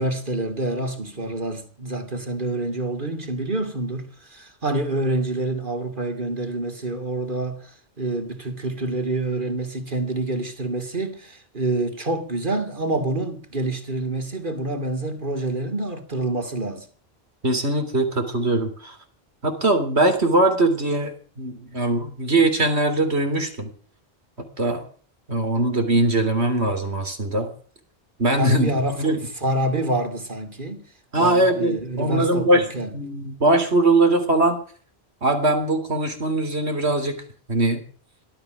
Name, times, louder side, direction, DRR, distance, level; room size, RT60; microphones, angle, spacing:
voice 1, 0.0-7.6 8.0-16.9 28.4-29.1 29.4-30.8 31.1-32.9, right 2 dB, 50° right, 3.0 m, -27 dB
voice 2, 17.4-19.0 19.4-23.7 24.6-24.8 25.3-27.5 28.2-28.7 29.0-29.2 31.1-32.7 32.9-34.6 35.2-37.2 37.5-37.8, right 2 dB, 90° right, 3.8 m, -21 dB
18.0 x 13.0 x 6.2 m
omnidirectional pair, 1.1 m